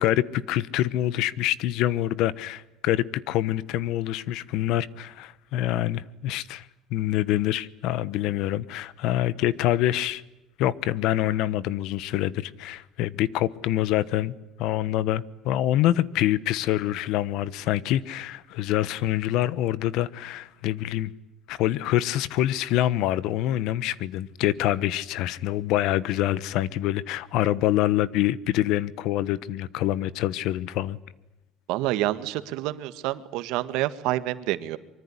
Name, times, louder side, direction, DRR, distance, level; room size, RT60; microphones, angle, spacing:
voice 1, 0.0-10.2 10.6-21.1 21.5-31.0, left 13 dB, 70° left, 1.2 m, -26 dB
voice 2, 31.7-34.8, right 15 dB, 80° right, 1.7 m, -28 dB
25.0 x 24.0 x 9.8 m
cardioid pair, 140°, 0 cm